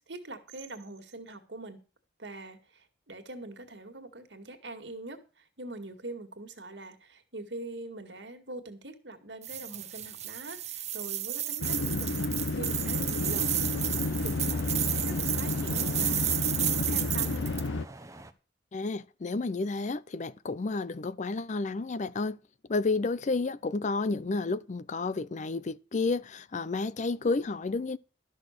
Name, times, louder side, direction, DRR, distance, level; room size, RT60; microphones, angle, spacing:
voice 1, 0.0-1.8 2.2-13.9 14.2-17.6, right 2 dB, 70° right, 2.1 m, -44 dB
sound 1, 9.4-17.7, right 12 dB, 40° right, 1.0 m, -32 dB
sound 2, 11.6-17.9, left 3 dB, 90° left, 0.7 m, -31 dB
sound 3, 12.8-18.3, right 1 dB, 15° right, 0.9 m, -46 dB
voice 2, 18.7-22.4 22.7-28.0, left 3 dB, 40° left, 0.5 m, -31 dB
12.5 x 6.3 x 6.6 m
head